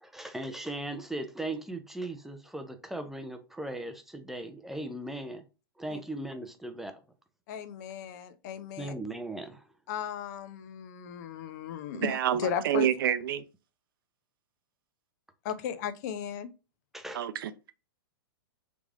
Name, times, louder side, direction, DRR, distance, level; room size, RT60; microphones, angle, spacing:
voice 1, 0.0-5.4 5.8-6.9 8.8-9.6 16.9-17.2, right 1 dB, 5° right, 0.4 m, -38 dB
voice 2, 7.5-8.9 9.9-12.9 15.4-16.5, left 8 dB, 50° left, 0.6 m, -36 dB
voice 3, 11.9-13.4 17.1-17.7, right 10 dB, 70° right, 0.4 m, -28 dB
3.4 x 3.1 x 2.4 m
hypercardioid pair, 130°, 12 cm